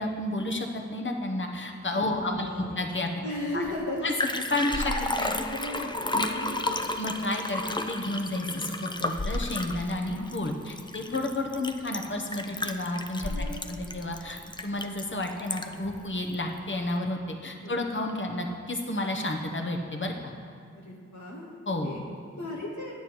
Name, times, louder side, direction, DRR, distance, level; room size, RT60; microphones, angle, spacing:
voice 1, 0.0-3.1 3.5-3.6 4.0-4.1 4.5-4.9 5.2-5.4 6.1-6.3 7.0-20.3 21.7-21.9, left 1 dB, 40° left, 3 dB, 1.1 m, -31 dB
voice 2, 2.1-2.8 3.2-4.1 4.6-4.7 5.1-6.8 8.5-8.7 10.1-10.3 13.2-13.7 17.6-17.8 20.7-21.5 21.8-22.9, left 1 dB, 80° left, -3 dB, 1.2 m, -37 dB
Liquid, 3.7-3.8 4.0-15.9 16.3-16.4, left 2 dB, 15° left, 0.5 m, -32 dB
9.2 x 6.9 x 4.7 m, 2.4 s
wide cardioid pair, 50°, 29 cm